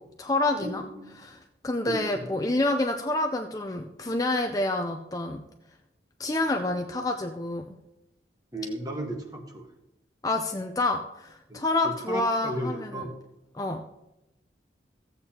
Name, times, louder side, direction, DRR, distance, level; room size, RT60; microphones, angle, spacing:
voice 1, 0.0-0.8 1.2-1.4 1.6-5.4 6.2-7.7 10.2-13.0 13.5-13.8, left 2 dB, 20° left, 5 dB, 0.5 m, -28 dB
voice 2, 0.6-1.3 1.8-2.2 8.5-9.7 11.5-13.1, right 1 dB, 20° right, 3 dB, 1.2 m, -35 dB
14.5 x 8.1 x 2.9 m, 0.90 s
head